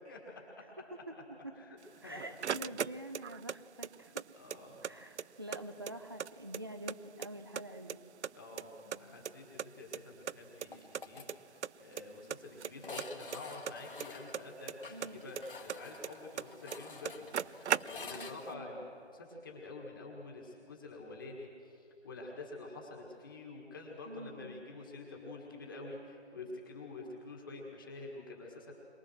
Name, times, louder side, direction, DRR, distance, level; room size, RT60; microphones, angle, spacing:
voice 1, 0.1-0.4 1.6-1.8 2.0-2.4 4.3-4.8 8.3-28.7, left 2 dB, 20° left, -1 dB, 1.7 m, -48 dB
sound 1, 1.8-3.6 3.8-4.9 5.2-5.3 5.5-7.0 7.2-8.0 8.2-9.7 9.9-10.0 10.3-10.4 10.6-10.7 10.9-11.4 11.6-12.0 12.3-14.7 15.0-16.5 16.7-16.8 17.0-18.3, right 8 dB, 85° right, 0.5 m, -37 dB
voice 2, 2.0-4.2 4.8-8.0 14.9-15.3 18.1-18.8 24.1-24.6, right 1 dB, 20° right, 7 dB, 0.7 m, -46 dB
sound 2, 10.7-11.3 11.6-11.7 11.9-12.0 12.8-18.3, left 4 dB, 50° left, 1.8 m, -49 dB
23.0 x 19.0 x 6.4 m, 2.5 s
figure-of-eight pair, 170°, 33 cm